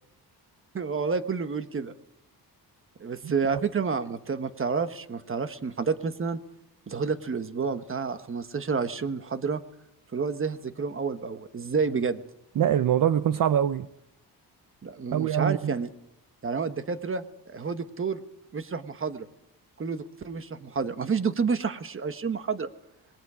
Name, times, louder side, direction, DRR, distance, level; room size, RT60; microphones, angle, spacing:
voice 1, 0.7-1.9 3.0-6.4 6.9-9.6 10.1-12.2 14.8-15.9 16.4-18.2 18.5-19.3 19.8-22.7, right 5 dB, 30° right, 1.3 m, -29 dB
voice 2, 12.6-13.9 15.1-15.7, right 9 dB, 55° right, 0.7 m, -24 dB
26.5 x 21.0 x 5.0 m
cardioid pair, 115°, 39 cm